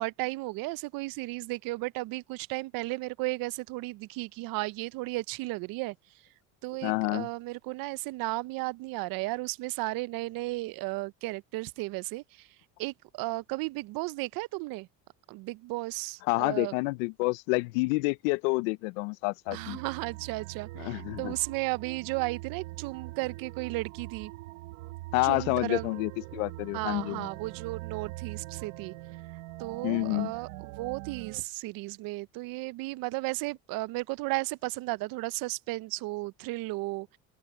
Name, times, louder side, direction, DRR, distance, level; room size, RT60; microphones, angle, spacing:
voice 1, 0.0-6.0 6.6-12.5 12.8-14.9 15.3-16.7 19.5-24.3 25.2-26.0 26.7-28.9 29.6-37.2, right 21 dB, 65° right, 0.6 m, -34 dB
voice 2, 6.8-7.3 16.3-19.8 20.8-21.3 25.1-27.3 29.8-30.3, left 26 dB, 90° left, 0.7 m, -28 dB
sound 1, 19.5-31.4, right 20 dB, 90° right, 1.5 m, -42 dB
open air
supercardioid pair, 105°, 38 cm